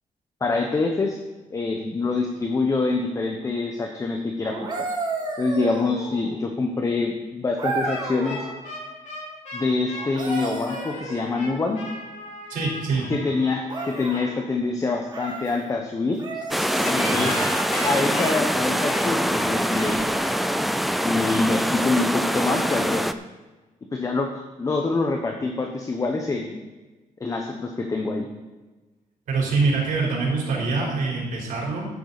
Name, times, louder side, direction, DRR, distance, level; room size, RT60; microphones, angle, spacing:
voice 1, 0.4-1.2 1.5-4.9 5.4-8.4 9.5-11.8 13.1-16.2 16.8-17.4 17.8-20.1 21.0-23.1 23.9-26.6 27.2-28.3, left 3 dB, 25° left, 3 dB, 0.9 m, -25 dB
sound 1, 4.4-6.4 7.6-8.5 9.9-11.6 13.7-14.3 15.1-15.5 16.2-18.0 19.9-20.1, right 3 dB, 30° right, 2.0 m, -32 dB
sound 2, 7.8-14.3 16.8-20.4, left 1 dB, 60° left, 4.4 m, -36 dB
voice 2, 12.5-13.1 17.0-17.3 29.3-31.9, right 4 dB, 75° right, -2 dB, 4.2 m, -24 dB
sound 3, 16.5-23.1, equal, ahead, 0.4 m, -24 dB
13.5 x 9.6 x 4.1 m, 1.2 s
wide cardioid pair, 170°, 14 cm